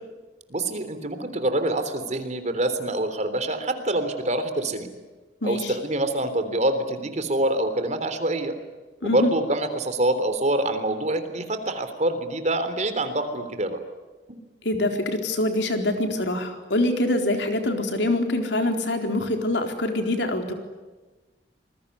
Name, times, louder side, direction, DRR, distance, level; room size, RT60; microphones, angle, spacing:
voice 1, 0.5-4.9 5.4-8.6 9.0-13.8, right 1 dB, 40° right, 9 dB, 3.5 m, -25 dB
voice 2, 5.4-5.7 9.0-9.3 14.6-20.5, left 1 dB, 75° left, 5 dB, 4.1 m, -25 dB
27.0 x 21.5 x 9.7 m, 1.3 s
head